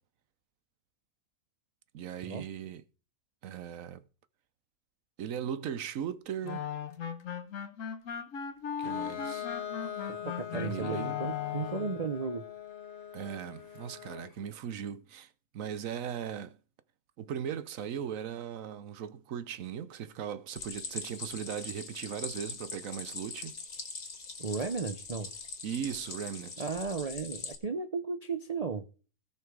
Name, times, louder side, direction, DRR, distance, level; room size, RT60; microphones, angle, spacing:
voice 1, 1.9-2.8 3.4-4.0 5.2-6.7 8.8-9.5 10.5-11.2 13.1-16.6 17.2-23.6 25.6-26.6, right 8 dB, 70° right, 1.2 m, -38 dB
Clarinet - D natural minor, 6.4-12.0, left 8 dB, 65° left, 1.4 m, -38 dB
Bowed string instrument, 8.8-14.4, left 9 dB, 50° left, 1.7 m, -42 dB
voice 2, 10.1-12.4 24.4-25.3 26.6-28.8, right 4 dB, 35° right, 0.6 m, -35 dB
Stream, 20.6-27.6, left 4 dB, 90° left, 2.3 m, -42 dB
17.5 x 5.9 x 4.7 m
omnidirectional pair, 1.5 m